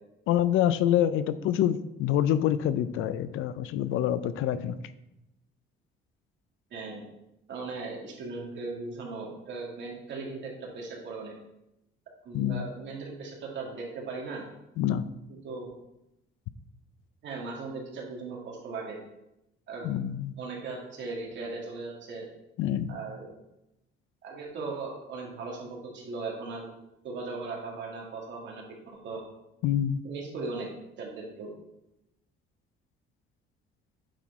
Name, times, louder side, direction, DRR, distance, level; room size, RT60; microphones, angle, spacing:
voice 1, 0.3-4.8 12.3-12.7 14.8-15.0 19.8-20.3 22.6-22.9 29.6-30.0, left 11 dB, 75° left, 14 dB, 0.5 m, -26 dB
voice 2, 6.7-7.0 7.5-11.3 12.2-14.4 15.4-15.7 17.2-19.0 19.7-19.9 20.4-22.3 22.9-23.3 24.2-26.7 27.0-29.2 30.0-30.7 31.0-31.5, right 3 dB, 60° right, -2 dB, 2.4 m, -38 dB
8.9 x 4.7 x 4.1 m, 0.89 s
cardioid pair, 105°, 21 cm